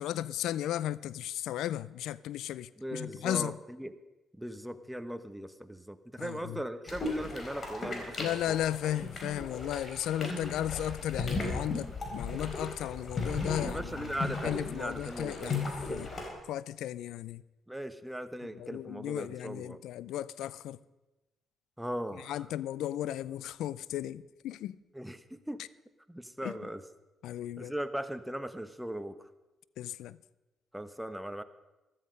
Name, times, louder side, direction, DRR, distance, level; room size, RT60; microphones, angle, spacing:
voice 1, 0.0-3.6 6.2-6.6 8.2-16.1 16.5-17.4 18.6-20.8 22.3-24.8 26.4-26.5 27.2-27.7 29.8-30.2, left 12 dB, 80° left, 0.4 m, -35 dB
voice 2, 2.8-4.0 4.4-8.6 13.6-15.6 15.9-16.1 17.7-19.8 21.8-22.5 24.9-25.6 26.1-26.8 27.6-29.1 30.7-31.4, equal, 5° right, 1.1 m, -39 dB
sound 1, 6.9-16.3, left 3 dB, 45° left, 3.9 m, -37 dB
14.5 x 13.0 x 5.3 m
supercardioid pair, 65°, 0 cm